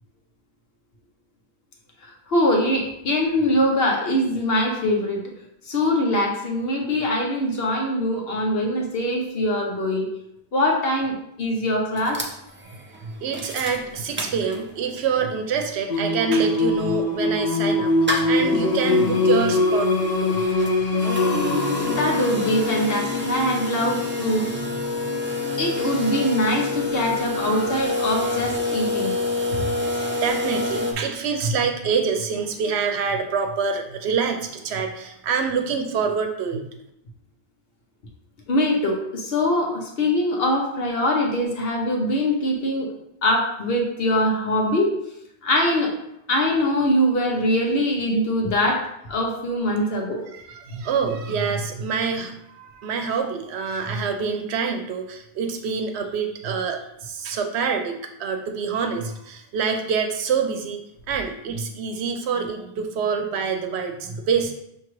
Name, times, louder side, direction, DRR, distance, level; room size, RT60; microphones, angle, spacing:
voice 1, 2.3-5.2 5.7-10.1 10.5-12.2 21.8-24.5 25.6-29.1 29.5-29.6 38.5-42.9 43.2-45.0 45.4-45.9 46.3-48.8 49.1-50.2, left 1 dB, 65° left, 1 dB, 1.0 m, -23 dB
sound 1, 12.0-14.9 15.3-15.4 15.6-30.9, left 2 dB, 20° right, 0.3 m, -29 dB
voice 2, 12.9-19.9 20.2-20.4 30.1-36.6 50.1-60.8 61.1-64.5, right 6 dB, 90° right, 5 dB, 0.9 m, -26 dB
Singing, 15.9-27.6, left 2 dB, 45° left, 0.7 m, -24 dB
5.9 x 2.8 x 3.0 m, 0.79 s
omnidirectional pair, 1.1 m